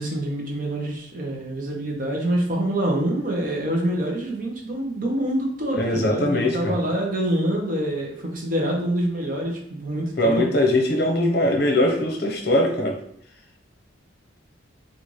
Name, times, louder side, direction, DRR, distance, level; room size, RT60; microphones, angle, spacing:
voice 1, 0.0-10.5, right 1 dB, 45° right, 0 dB, 0.8 m, -26 dB
voice 2, 5.8-6.8 10.2-13.0, left 1 dB, 55° left, 1 dB, 0.7 m, -21 dB
3.8 x 2.5 x 3.1 m, 0.68 s
head